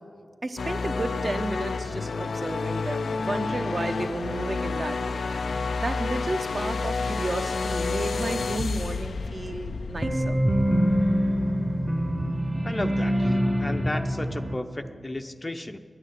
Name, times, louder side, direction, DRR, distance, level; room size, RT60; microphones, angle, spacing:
voice 1, 0.4-5.2 5.5-10.4, right 2 dB, 45° right, 7 dB, 0.9 m, -32 dB
sound 1, 0.6-13.6, left 4 dB, 80° left, 0.4 m, -30 dB
sound 2, 10.0-14.6, equal, 20° right, 1.0 m, -24 dB
voice 2, 12.6-15.8, left 1 dB, 30° left, 6 dB, 0.6 m, -34 dB
10.5 x 8.9 x 9.1 m, 2.1 s
cardioid pair, 55°, 0 cm